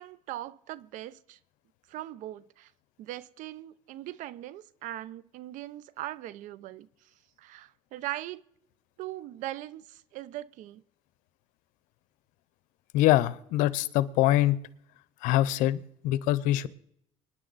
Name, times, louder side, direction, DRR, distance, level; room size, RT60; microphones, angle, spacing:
voice 1, 0.0-1.4 1.9-2.7 3.0-6.9 7.4-8.4 9.0-10.8, right 15 dB, 75° right, 0.7 m, -40 dB
voice 2, 12.9-14.6 15.2-16.7, left 14 dB, 85° left, 0.8 m, -24 dB
25.5 x 10.5 x 4.1 m
cardioid pair, 105°, 13 cm